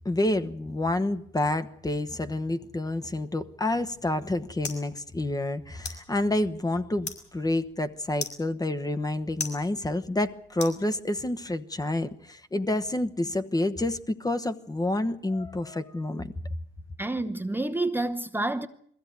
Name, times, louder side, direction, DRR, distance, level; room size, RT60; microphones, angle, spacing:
voice 1, 0.0-16.3, left 1 dB, 20° left, 1.1 m, -28 dB
sound 1, 3.8-11.4, left 5 dB, 60° left, 5.6 m, -42 dB
voice 2, 17.0-18.7, right 2 dB, 10° right, 1.0 m, -28 dB
21.5 x 15.5 x 9.5 m
cardioid pair, 90°, 20 cm